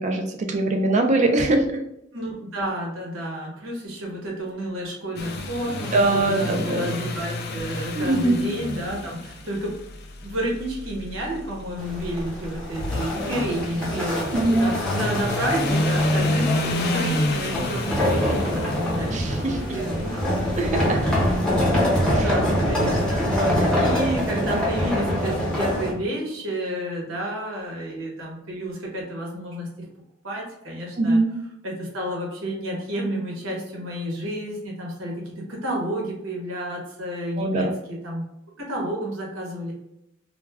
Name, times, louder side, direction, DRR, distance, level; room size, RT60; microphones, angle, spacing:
voice 1, 0.0-1.8 5.9-6.9 7.9-8.4 14.3-14.6 19.1-19.8 20.6-21.0 22.2-22.3 31.0-31.4 37.4-37.7, right 2 dB, 35° right, 4 dB, 0.4 m, -22 dB
voice 2, 2.1-9.7 10.2-20.3 20.8-21.2 21.8-29.7 30.2-31.2 31.6-38.2 38.6-39.7, right 1 dB, 70° right, -2 dB, 1.0 m, -30 dB
sound 1, 5.2-24.0, left 1 dB, 50° left, 0.4 m, -30 dB
sound 2, 11.8-25.9, equal, 5° left, 0.6 m, -25 dB
2.3 x 2.2 x 3.2 m, 0.82 s
head